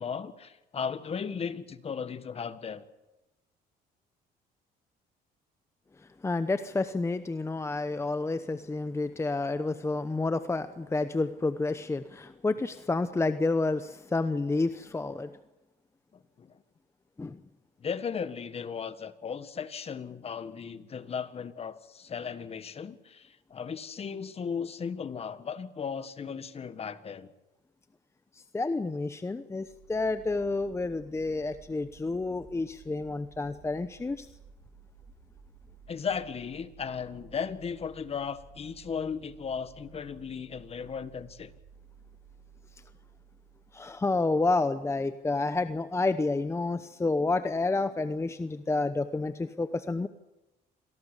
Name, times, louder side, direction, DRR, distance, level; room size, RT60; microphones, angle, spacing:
voice 1, 0.0-2.8 16.1-16.6 17.8-27.3 35.9-41.5 44.2-44.3, left 6 dB, 35° left, 12 dB, 1.6 m, -36 dB
voice 2, 6.2-15.3 17.2-17.4 28.5-34.3 43.7-50.1, left 3 dB, 15° left, 11 dB, 0.9 m, -29 dB
sound 1, 29.6-44.3, right 6 dB, 60° right, 6.7 m, -55 dB
26.5 x 18.0 x 8.3 m, 0.99 s
cardioid pair, 110°, 17 cm